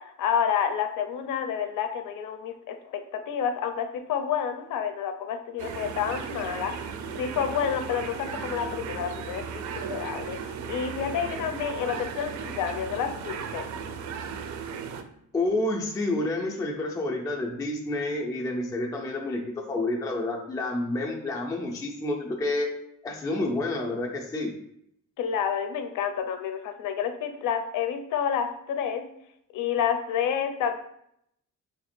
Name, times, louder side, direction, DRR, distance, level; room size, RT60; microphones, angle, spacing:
voice 1, 0.0-13.7 25.2-29.0 29.5-30.8, left 8 dB, 80° left, 7 dB, 0.6 m, -29 dB
sound 1, 5.6-15.0, right 6 dB, 65° right, 0.5 m, -36 dB
voice 2, 15.3-22.7 23.0-24.5, left 2 dB, 10° left, 0 dB, 0.3 m, -29 dB
3.2 x 2.8 x 4.2 m, 0.73 s
cardioid pair, 180°, 31 cm